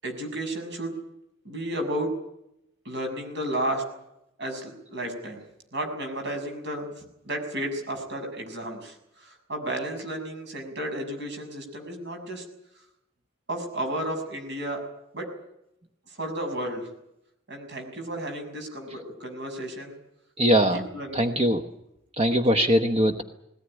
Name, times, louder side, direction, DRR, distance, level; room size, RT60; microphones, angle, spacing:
voice 1, 0.0-1.0 1.4-2.2 2.8-3.9 4.4-5.4 5.7-12.4 13.5-14.9 15.1-15.3 16.1-16.9 17.5-20.0 20.7-21.4 22.3-22.6, right 1 dB, 55° right, 5 dB, 6.5 m, -33 dB
voice 2, 20.4-20.8 21.1-21.6 22.2-23.2, equal, 30° right, 6 dB, 1.1 m, -21 dB
20.5 x 18.0 x 10.0 m, 0.82 s
head